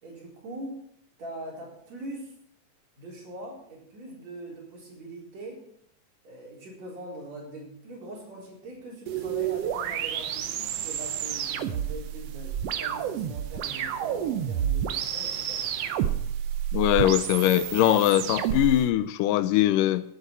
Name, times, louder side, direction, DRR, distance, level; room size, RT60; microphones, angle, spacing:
voice 1, 0.0-0.8 1.2-2.3 3.0-5.6 6.2-15.7, right 1 dB, 55° right, -3 dB, 5.3 m, -42 dB
sound 1, 9.1-18.8, right 10 dB, 75° right, 1.4 m, -30 dB
voice 2, 16.7-20.0, left 13 dB, 85° left, 14 dB, 2.3 m, -22 dB
17.5 x 9.1 x 4.7 m, 0.68 s
omnidirectional pair, 3.7 m